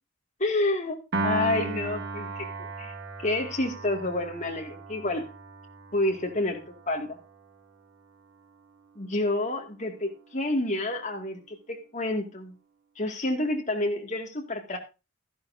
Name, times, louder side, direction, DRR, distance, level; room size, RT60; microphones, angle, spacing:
voice 1, 0.4-2.5 2.8-2.9 3.2-5.3 5.9-6.6 6.9-7.2 9.0-12.5 13.0-14.8, left 2 dB, 35° left, 2 dB, 2.2 m, -29 dB
Piano, 1.1-7.5, right 3 dB, 50° right, 1.4 m, -35 dB
13.5 x 11.5 x 2.7 m, 0.28 s
head